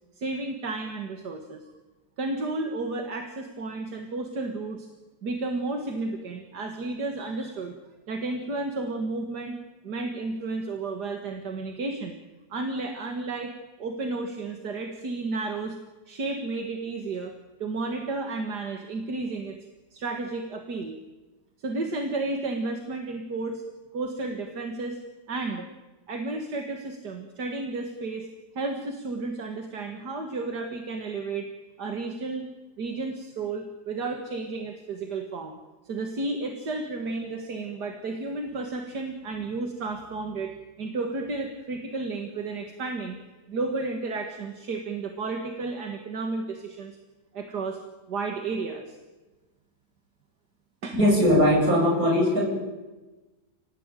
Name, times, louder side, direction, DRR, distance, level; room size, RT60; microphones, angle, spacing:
voice 1, 0.2-1.6 2.2-4.9 5.2-7.8 8.1-9.6 9.8-12.2 12.5-13.5 13.8-15.8 16.1-17.3 17.6-19.6 19.9-21.0 21.6-23.6 23.9-25.0 25.3-25.7 26.1-28.3 28.5-31.5 31.8-32.5 32.8-35.6 35.8-43.2 43.5-47.0 47.3-47.8 48.1-49.0 50.8-51.0, right 3 dB, 85° right, 4 dB, 2.5 m, -32 dB
voice 2, 51.0-52.5, equal, 65° right, 0 dB, 8.7 m, -20 dB
29.5 x 19.0 x 9.2 m, 1.2 s
omnidirectional pair, 1.7 m